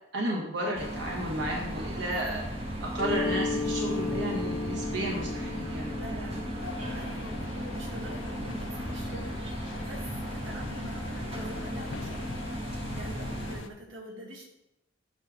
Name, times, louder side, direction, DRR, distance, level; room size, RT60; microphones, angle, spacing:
voice 1, 0.1-5.9, right 1 dB, 60° right, -3 dB, 1.4 m, -33 dB
sound 1, 0.7-13.6, equal, 30° right, 1.4 m, -36 dB
Mallet percussion, 3.0-8.5, left 3 dB, 5° left, 0.7 m, -35 dB
voice 2, 6.0-12.2 12.9-14.4, right 1 dB, 85° right, -2 dB, 1.9 m, -45 dB
sound 2, 6.6-13.7, left 4 dB, 75° left, 0.6 m, -45 dB
8.2 x 3.4 x 6.1 m, 0.87 s
head